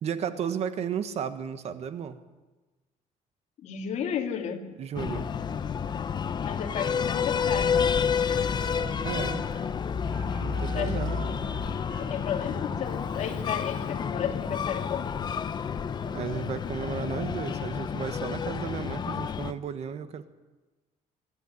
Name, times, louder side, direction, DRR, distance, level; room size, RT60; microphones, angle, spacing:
voice 1, 0.0-2.2 4.8-5.3 9.0-9.5 10.4-11.2 16.0-20.3, right 8 dB, 50° right, 11 dB, 1.4 m, -34 dB
voice 2, 3.6-4.6 6.4-8.0 10.7-11.4 11.9-15.1, left 8 dB, 55° left, 2 dB, 2.6 m, -33 dB
Breathing, 4.9-19.5, left 6 dB, 30° left, 0.8 m, -30 dB
Wind instrument woodwind instrument, 6.6-9.7 10.0-13.5, right 6 dB, 80° right, 5.2 m, -47 dB
25.0 x 12.0 x 9.5 m, 1.2 s
cardioid pair, 150°, 14 cm